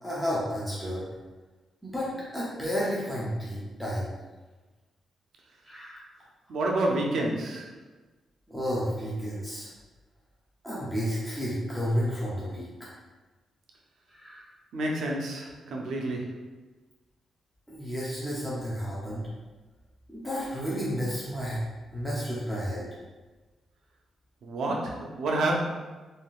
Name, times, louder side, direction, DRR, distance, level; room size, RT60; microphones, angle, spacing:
voice 1, 0.0-1.0 1.8-4.1 5.6-6.0 8.5-9.7 10.6-12.9 14.1-14.4 17.7-19.3 20.1-21.6 21.9-22.8, equal, ahead, -8 dB, 0.5 m, -31 dB
voice 2, 6.5-7.7 14.7-16.4 24.4-25.6, right 2 dB, 75° right, 0 dB, 0.5 m, -29 dB
3.5 x 2.5 x 2.3 m, 1.2 s
wide cardioid pair, 145°, 0 cm